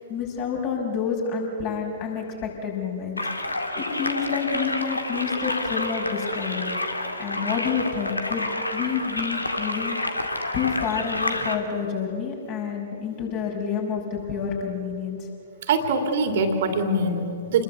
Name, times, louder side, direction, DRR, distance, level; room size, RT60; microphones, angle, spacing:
voice 1, 0.1-3.2 3.7-6.8 7.2-10.0 10.5-15.3, left 6 dB, 35° left, 0 dB, 5.8 m, -29 dB
sound 1, 3.2-11.6, left 2 dB, 80° left, 2.1 m, -29 dB
voice 2, 15.6-17.6, right 3 dB, 50° right, 5 dB, 2.8 m, -23 dB
28.5 x 21.5 x 8.0 m, 2.7 s
figure-of-eight pair, 110°, 0 cm